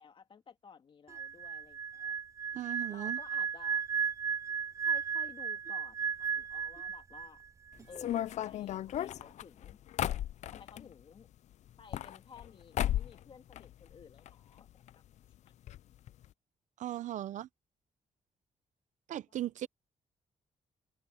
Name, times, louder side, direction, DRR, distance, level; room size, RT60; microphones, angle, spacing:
voice 1, 0.0-2.2 2.9-3.8 4.8-7.4 7.9-9.8 10.5-11.3 11.8-14.7 19.3-19.4, left 6 dB, 40° left, 2.4 m, -55 dB
sound 1, 1.1-7.5 7.7-8.0, right 6 dB, 25° right, 0.4 m, -35 dB
voice 2, 2.5-3.2 16.8-17.5 19.1-19.7, right 13 dB, 70° right, 0.7 m, -37 dB
sound 2, 7.9-10.8 11.7-12.5 12.7-13.2 13.5-14.3 14.6-14.7 14.9-15.0 15.7-15.8 16.1-16.2, left 12 dB, 65° left, 0.4 m, -35 dB
wide cardioid pair, 155°, 13 cm